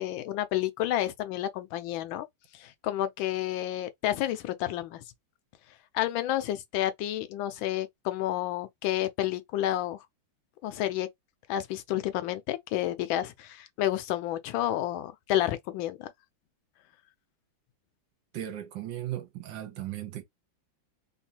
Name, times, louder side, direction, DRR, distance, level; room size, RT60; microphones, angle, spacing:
voice 1, 0.0-2.3 2.5-5.0 5.9-10.0 10.6-11.1 11.5-16.1, left 13 dB, 90° left, 1.4 m, -30 dB
voice 2, 18.3-20.2, right 12 dB, 80° right, 1.5 m, -36 dB
3.5 x 2.5 x 2.8 m
omnidirectional pair, 2.1 m